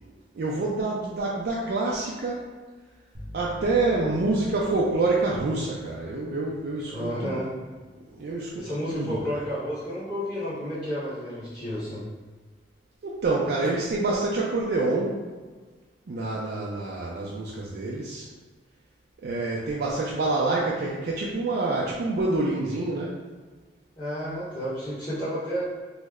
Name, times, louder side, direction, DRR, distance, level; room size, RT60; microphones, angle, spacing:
voice 1, 0.4-2.4 3.3-7.4 8.2-9.4 13.0-15.2 16.1-18.3 19.2-23.2, right 2 dB, 60° right, -4 dB, 0.4 m, -27 dB
sound 1, 3.1-10.9, left 1 dB, 15° right, 0.6 m, -48 dB
voice 2, 6.8-7.5 8.5-12.0 24.0-25.7, equal, 25° left, -16 dB, 1.0 m, -31 dB
3.1 x 2.1 x 3.5 m, 1.4 s
head